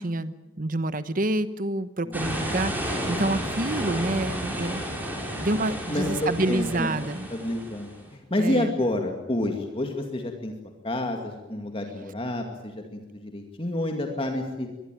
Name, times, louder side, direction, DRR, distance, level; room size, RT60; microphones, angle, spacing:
voice 1, 0.0-5.1 5.4-7.3 8.4-8.7, right 2 dB, 45° right, 13 dB, 1.1 m, -28 dB
sound 1, 2.1-8.0, equal, 10° right, 5.7 m, -32 dB
voice 2, 5.9-6.9 7.3-10.5 10.8-14.7, left 1 dB, 30° left, 3 dB, 2.2 m, -29 dB
23.5 x 21.0 x 9.2 m, 1.1 s
head